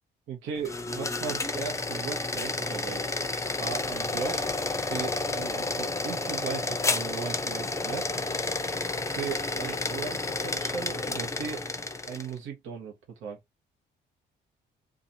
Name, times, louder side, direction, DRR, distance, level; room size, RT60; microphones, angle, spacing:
voice 1, 0.3-3.2 3.6-4.5 4.9-8.1 9.0-11.6 12.1-13.4, right 6 dB, 85° right, 1.0 m, -37 dB
sound 1, 0.6-12.3, left 3 dB, 15° left, 0.5 m, -31 dB
2.5 x 2.4 x 2.6 m
cardioid pair, 90°, 20 cm